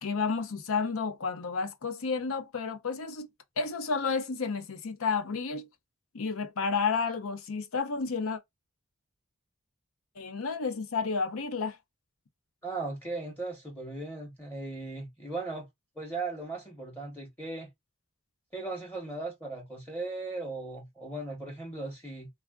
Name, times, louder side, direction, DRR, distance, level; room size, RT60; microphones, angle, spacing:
voice 1, 0.0-3.3 3.6-5.7 6.1-8.4 10.2-11.8, left 5 dB, 75° left, 0.6 m, -31 dB
voice 2, 12.6-15.7 16.0-17.7 18.5-22.3, right 3 dB, 10° left, 0.8 m, -37 dB
3.4 x 2.3 x 2.2 m
head